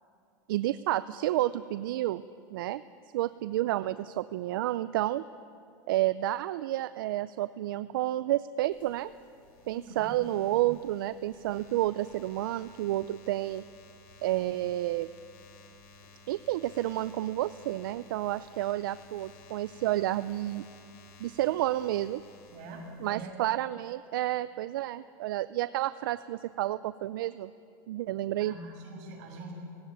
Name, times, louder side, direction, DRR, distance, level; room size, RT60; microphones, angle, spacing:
voice 1, 0.5-2.2 2.5-2.8 3.1-5.2 5.9-9.1 9.7-13.6 14.2-15.1 16.3-20.7 21.2-22.2 23.0-27.5 27.9-28.5, right 15 dB, 80° right, 15 dB, 0.5 m, -30 dB
sound 1, 8.7-23.2, left 3 dB, 65° left, 5.6 m, -55 dB
voice 2, 9.6-10.2 22.5-23.3 28.4-29.5, right 2 dB, 60° right, 1 dB, 6.7 m, -44 dB
18.0 x 17.0 x 9.4 m, 2.5 s
supercardioid pair, 145°, 11 cm